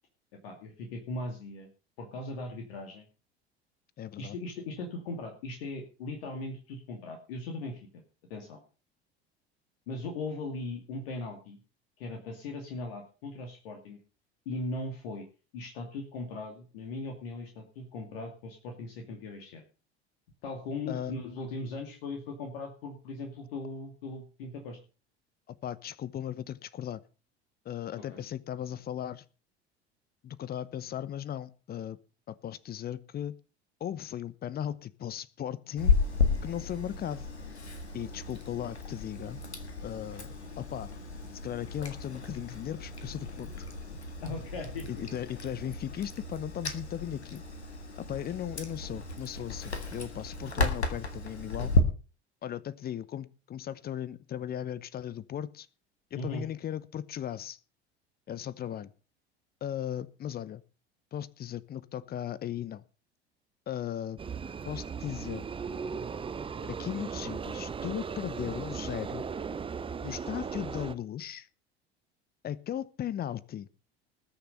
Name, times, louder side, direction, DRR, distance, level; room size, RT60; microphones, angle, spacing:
voice 1, 0.4-1.7 2.0-3.0 4.2-8.0 8.3-8.6 9.9-11.6 12.0-14.0 14.5-15.2 15.5-19.6 20.4-24.8 28.1-28.2 44.2-45.0 56.1-56.4, left 2 dB, 60° left, 2.6 m, -39 dB
voice 2, 4.0-4.4 20.9-21.1 25.5-27.0 27.6-29.2 30.2-32.0 32.3-33.3 33.8-36.0 36.4-37.3 37.9-39.4 39.8-40.9 41.4-43.5 44.9-47.4 48.0-51.7 52.4-55.7 56.1-57.6 58.3-58.9 59.6-60.6 61.1-62.8 63.7-64.2 64.6-65.4 66.7-69.2 70.0-71.5 72.4-73.7, left 10 dB, 30° left, 0.9 m, -37 dB
Chewing mastication, 35.8-51.8, left 3 dB, 80° left, 1.8 m, -33 dB
sound 1, 64.2-70.9, right 6 dB, 15° right, 0.8 m, -37 dB
20.0 x 6.9 x 5.5 m
figure-of-eight pair, 70°, 33 cm